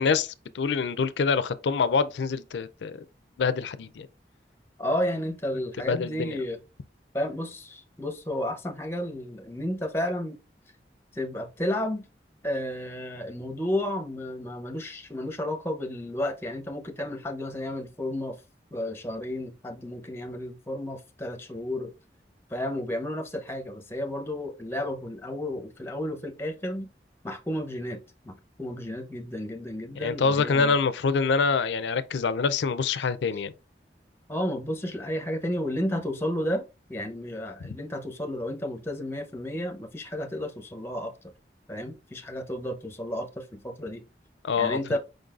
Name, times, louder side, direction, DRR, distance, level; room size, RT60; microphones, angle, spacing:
voice 1, 0.0-3.0 3.4-4.1 5.9-6.4 30.0-33.5 44.4-45.0, left 5 dB, 85° left, 0.4 m, -25 dB
voice 2, 4.8-6.6 7.1-10.4 11.1-12.0 12.4-18.4 18.7-21.9 22.5-26.9 27.2-30.7 34.3-41.1 41.7-44.0 44.6-45.0, left 1 dB, 15° left, 0.6 m, -32 dB
5.0 x 3.9 x 2.4 m
head